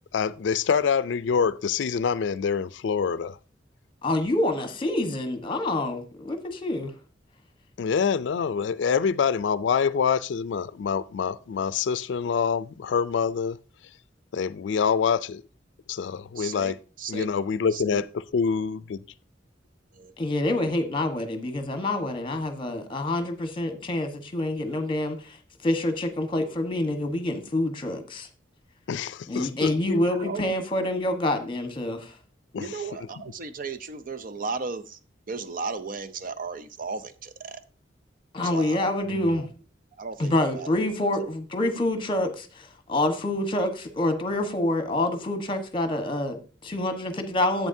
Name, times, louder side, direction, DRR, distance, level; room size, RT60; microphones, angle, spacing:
voice 1, 0.1-3.4 7.8-13.6 14.3-15.4 15.9-16.8 17.1-19.0 28.9-30.0 32.5-32.8 39.1-39.2, left 6 dB, 80° left, 0.4 m, -26 dB
voice 2, 4.0-6.9 20.2-25.2 25.6-28.3 29.3-32.1 38.3-39.5 40.2-47.7, left 1 dB, 30° left, 1.2 m, -27 dB
voice 3, 16.4-17.3 17.7-18.0 19.9-20.1 30.1-30.5 32.5-35.0 35.3-37.6 38.4-39.2 40.0-40.8 41.2-41.3, right 4 dB, 50° right, 0.6 m, -35 dB
10.5 x 8.1 x 2.7 m
head